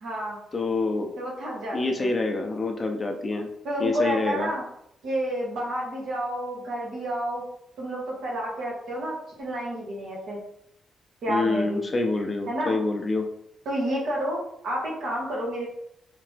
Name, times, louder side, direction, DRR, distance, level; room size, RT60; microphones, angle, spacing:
voice 1, 0.0-0.4 1.2-2.1 3.6-4.6 5.0-7.4 7.8-10.4 11.2-11.9 12.5-12.8 13.6-15.7, right 1 dB, 70° right, -3 dB, 1.4 m, -30 dB
voice 2, 0.5-1.1 1.7-3.5 3.8-4.5 11.3-13.3, left 3 dB, 25° left, 4 dB, 0.5 m, -26 dB
3.3 x 2.9 x 3.2 m, 0.75 s
cardioid pair, 125°, 0 cm